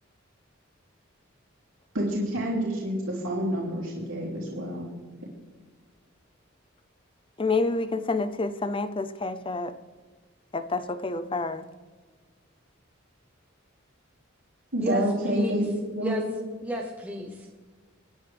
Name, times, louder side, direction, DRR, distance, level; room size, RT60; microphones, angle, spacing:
voice 1, 1.9-4.9 14.7-16.3, right 1 dB, 80° right, -5 dB, 3.4 m, -28 dB
voice 2, 7.4-9.7 10.5-11.7, left 3 dB, 25° left, 11 dB, 0.6 m, -28 dB
voice 3, 14.8-15.6 16.0-16.2 16.6-17.5, equal, 10° right, 0 dB, 1.1 m, -32 dB
24.5 x 10.0 x 3.4 m, 1.4 s
head